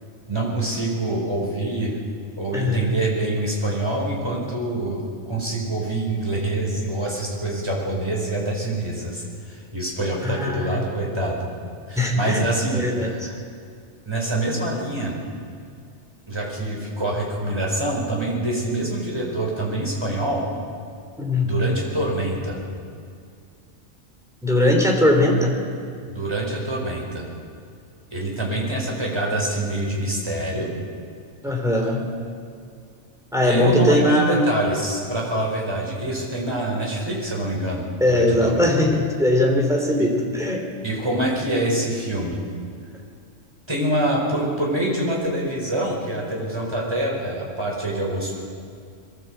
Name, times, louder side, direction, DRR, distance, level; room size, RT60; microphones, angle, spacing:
voice 1, 0.3-2.0 2.4-11.4 11.9-13.3 14.0-15.2 16.3-20.4 21.4-22.6 26.1-27.2 28.1-30.7 33.4-38.7 40.0-40.1 40.8-42.4 43.7-48.4, right 1 dB, 20° right, -3 dB, 4.9 m, -25 dB
voice 2, 2.5-2.9 10.2-10.8 11.9-12.4 12.7-13.1 21.2-21.6 24.4-25.5 31.4-32.0 33.3-34.5 38.0-40.7, left 1 dB, ahead, 1 dB, 3.2 m, -20 dB
22.5 x 15.5 x 8.0 m, 2.3 s
omnidirectional pair, 1.4 m